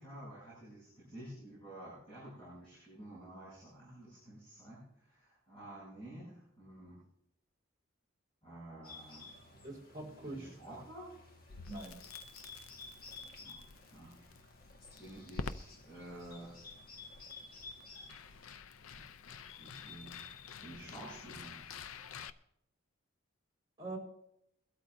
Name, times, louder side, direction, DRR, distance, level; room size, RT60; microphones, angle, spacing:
voice 1, 0.0-7.0 8.4-9.2 10.2-11.1 13.4-14.1 15.0-16.6 19.5-20.2 20.6-21.6, right 1 dB, 25° left, -9 dB, 7.1 m, -50 dB
Bird, 8.8-18.5, left 3 dB, 45° left, 1.7 m, -53 dB
voice 2, 9.6-10.5 11.7-12.0 23.8-24.0, right 2 dB, 20° right, -2 dB, 4.1 m, -43 dB
Crackle, 11.5-22.3, left 5 dB, 85° left, 0.5 m, -49 dB
23.0 x 12.5 x 2.6 m, 0.76 s
head